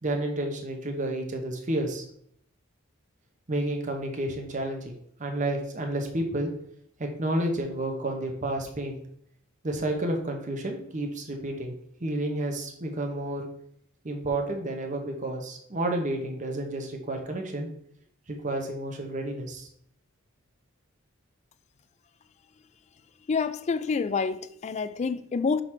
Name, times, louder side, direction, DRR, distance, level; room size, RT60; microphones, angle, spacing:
voice 1, 0.0-2.0 3.5-6.5 7.0-9.0 9.6-11.7 12.0-13.5 14.0-17.7 18.3-19.7, right 1 dB, 35° right, 1.0 m, -30 dB
voice 2, 23.3-25.6, left 5 dB, 35° left, 0.3 m, -28 dB
6.2 x 3.9 x 4.4 m
head